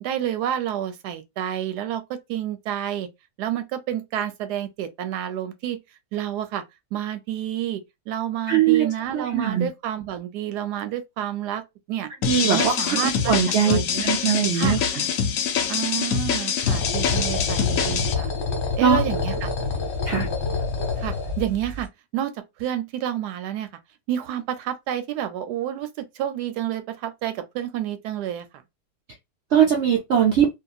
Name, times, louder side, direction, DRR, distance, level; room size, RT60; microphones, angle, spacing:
voice 1, 0.0-3.1 3.4-5.8 6.1-6.6 6.9-7.8 8.1-11.6 11.9-12.1 12.5-13.3 13.6-14.0 14.5-14.9 15.7-18.3 18.8-19.5 21.0-22.3 22.6-23.7 24.1-28.4, right 11 dB, 85° right, 1.2 m, -29 dB
voice 2, 8.5-8.9 9.1-9.7 12.2-14.8 18.8-19.0 20.1-20.3 29.5-30.5, right 8 dB, 70° right, 0.6 m, -21 dB
sound 1, 12.2-18.1, left 7 dB, 65° left, 0.9 m, -25 dB
sound 2, 16.6-21.8, left 4 dB, 40° left, 1.0 m, -27 dB
2.8 x 2.4 x 2.3 m
omnidirectional pair, 1.7 m